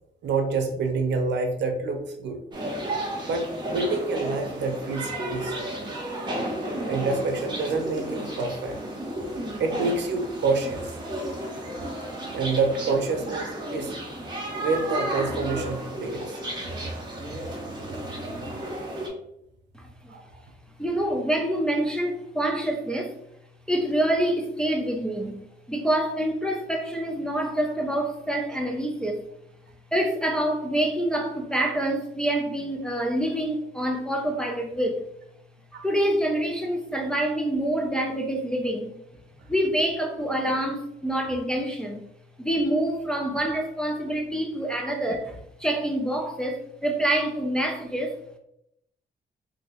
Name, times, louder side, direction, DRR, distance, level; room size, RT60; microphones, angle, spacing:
voice 1, 0.2-2.4 3.3-5.5 6.9-8.8 9.6-10.9 12.3-13.9 14.6-16.3 16.9-17.0 20.1-20.2, right 3 dB, 80° right, 4 dB, 0.6 m, -27 dB
sound 1, 2.5-19.1, right 1 dB, 25° right, 0.7 m, -33 dB
voice 2, 19.8-20.1 20.8-23.1 23.7-25.4 25.7-29.2 29.9-35.0 35.8-38.9 39.5-42.0 42.4-48.2, right 1 dB, 5° left, 1 dB, 0.3 m, -26 dB
2.9 x 2.6 x 2.8 m, 0.79 s
wide cardioid pair, 170°, 18 cm